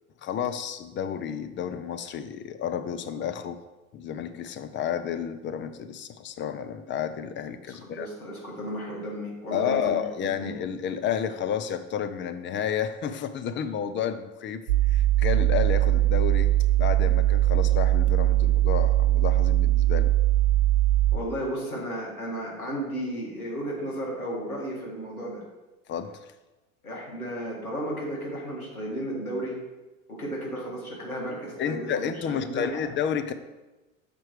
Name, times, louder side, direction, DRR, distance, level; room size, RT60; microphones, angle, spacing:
voice 1, 0.2-3.6 3.9-8.1 9.5-16.5 16.8-20.1 25.9-26.3 31.6-33.3, left 8 dB, 30° left, 9 dB, 0.5 m, -31 dB
voice 2, 7.7-10.0 10.4-10.5 21.1-25.4 26.8-29.5 30.1-32.9, right 1 dB, 85° left, -3 dB, 1.9 m, -34 dB
sound 1, 14.7-21.2, right 14 dB, 75° right, 0.5 m, -21 dB
6.8 x 4.5 x 4.8 m, 1.1 s
figure-of-eight pair, 75°, 42 cm